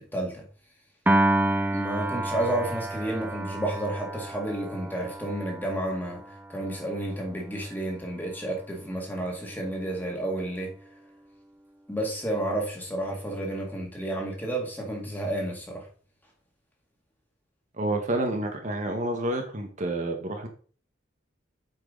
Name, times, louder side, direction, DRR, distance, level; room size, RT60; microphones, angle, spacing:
voice 1, 0.1-0.4 1.7-6.2 6.5-10.7 11.9-15.9, right 1 dB, 10° left, 2.1 m, -31 dB
Piano, 1.1-7.4, right 1 dB, 10° right, 0.4 m, -29 dB
voice 2, 17.8-20.5, right 1 dB, 40° right, 1.2 m, -29 dB
8.0 x 4.6 x 5.2 m
head